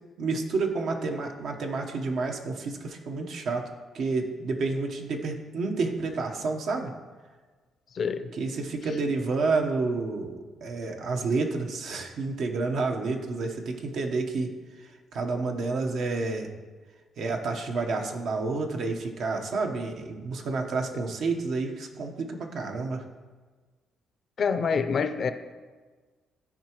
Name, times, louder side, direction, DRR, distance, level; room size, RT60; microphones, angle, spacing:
voice 1, 0.2-3.6 3.9-6.9 8.3-10.4 10.6-14.5 15.1-16.5 17.2-23.0, right 3 dB, 70° right, 3 dB, 1.0 m, -29 dB
voice 2, 8.0-8.3 24.4-25.3, left 6 dB, 50° left, 9 dB, 0.5 m, -26 dB
13.0 x 4.7 x 3.0 m, 1.4 s
cardioid pair, 90°, 0 cm